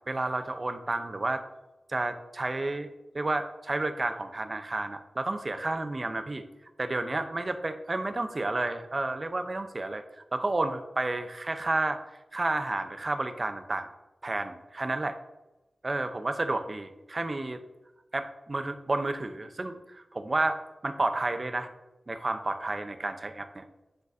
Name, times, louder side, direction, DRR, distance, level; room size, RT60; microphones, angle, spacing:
voice 1, 0.1-1.4 1.9-2.9 3.1-6.5 6.8-10.0 10.3-12.0 12.3-13.9 14.2-15.2 15.8-17.6 18.1-21.7 22.1-23.6, right 2 dB, 45° right, 8 dB, 0.7 m, -31 dB
10.0 x 4.0 x 2.7 m, 1.0 s
cardioid pair, 45°, 0 cm